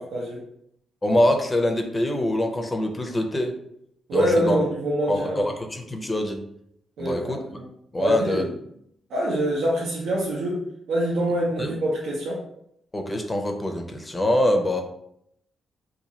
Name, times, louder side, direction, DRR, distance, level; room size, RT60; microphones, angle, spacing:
voice 1, 0.1-0.4 4.1-5.5 7.0-7.7 8.0-8.5 9.1-10.6 10.9-12.4, right 1 dB, 90° right, -5 dB, 0.8 m, -25 dB
voice 2, 1.0-3.5 4.1-4.6 5.1-6.4 7.0-7.4 7.9-8.4 11.6-11.7 12.9-14.8, left 1 dB, 15° left, 4 dB, 0.5 m, -24 dB
2.9 x 2.6 x 3.9 m, 0.73 s
cardioid pair, 150°, 0 cm